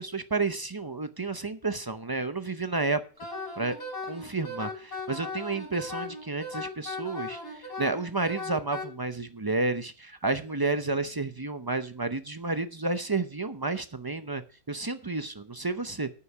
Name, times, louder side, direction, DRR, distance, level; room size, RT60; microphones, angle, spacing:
voice 1, 0.0-3.0 3.6-3.8 4.1-16.1, right 3 dB, 30° right, 10 dB, 0.4 m, -31 dB
Wind instrument woodwind instrument, 3.2-8.9, left 2 dB, 80° left, 6.1 m, -37 dB
9.8 x 8.4 x 6.0 m, 0.38 s
omnidirectional pair, 1.5 m